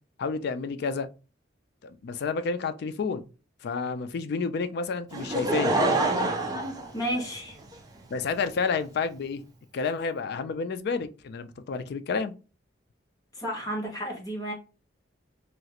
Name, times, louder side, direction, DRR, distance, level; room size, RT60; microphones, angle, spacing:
voice 1, 0.2-1.1 1.8-3.2 3.6-5.8 8.1-9.4 9.7-12.3, left 4 dB, 60° left, 0.4 m, -30 dB
Laughter / Crowd, 5.1-7.7 8.4-8.5, right 2 dB, 20° right, 0.5 m, -26 dB
voice 2, 6.9-7.6 13.3-14.5, equal, 20° left, 1.0 m, -32 dB
3.0 x 2.4 x 2.8 m
head